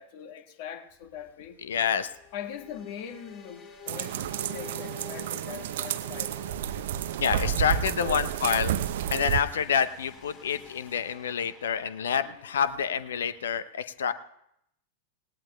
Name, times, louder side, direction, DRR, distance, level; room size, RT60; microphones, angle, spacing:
voice 1, 0.0-1.6 2.3-6.4 7.7-8.7 12.2-12.4, left 8 dB, 50° left, 1.6 m, -42 dB
sound 1, 1.0-13.4, left 8 dB, 30° left, 2.8 m, -50 dB
voice 2, 1.6-2.1 7.2-8.8 9.1-14.1, left 7 dB, 65° left, 0.7 m, -28 dB
sound 2, 3.9-9.4, right 10 dB, 55° right, 0.7 m, -30 dB
28.0 x 18.5 x 2.3 m
figure-of-eight pair, 90°, 0 cm